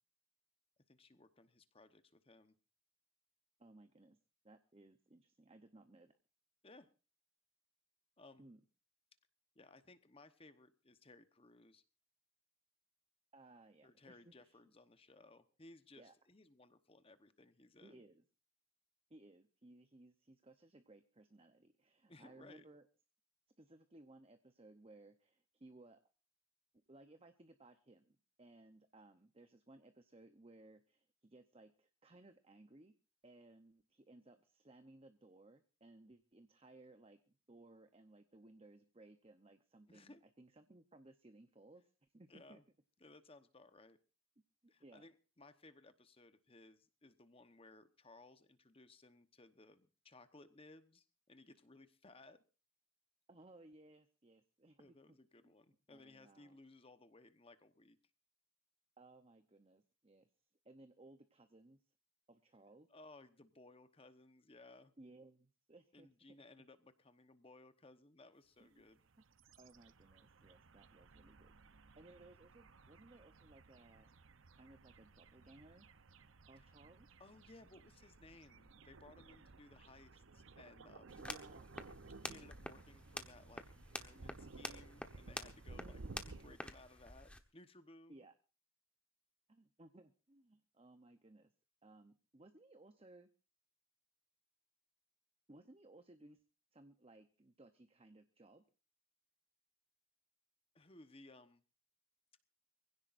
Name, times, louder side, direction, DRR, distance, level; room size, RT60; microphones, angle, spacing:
voice 1, 0.9-2.5 6.6-6.9 8.2-8.5 9.5-11.8 13.8-18.0 22.1-22.7 39.9-40.2 42.3-42.6 43.0-44.0 44.7-52.4 54.8-58.0 62.9-64.9 65.9-69.0 76.6-76.7 77.2-81.2 82.2-83.6 83.9-88.2 100.7-101.6, left 2 dB, 25° left, 11 dB, 1.0 m, -61 dB
voice 2, 3.6-4.2 4.4-6.1 8.4-8.6 13.3-14.6 16.0-16.1 17.8-18.2 19.1-22.9 23.6-26.1 26.9-32.9 33.2-42.6 44.6-45.1 53.3-55.2 55.4-55.5 55.9-56.6 59.0-60.3 60.6-61.8 62.3-62.9 65.0-66.1 68.6-68.8 69.6-71.6 72.0-74.1 74.6-75.9 76.5-77.1 81.2-81.7 85.8-86.2 88.1-88.3 89.5-91.5 91.8-93.3 95.5-96.4 96.7-98.6, right 2 dB, 30° right, 9 dB, 0.8 m, -61 dB
sound 1, 68.8-86.6, right 3 dB, 70° right, 0.8 m, -57 dB
sound 2, 81.1-87.4, left 1 dB, 5° left, 1.2 m, -49 dB
24.0 x 16.0 x 2.6 m, 0.34 s
head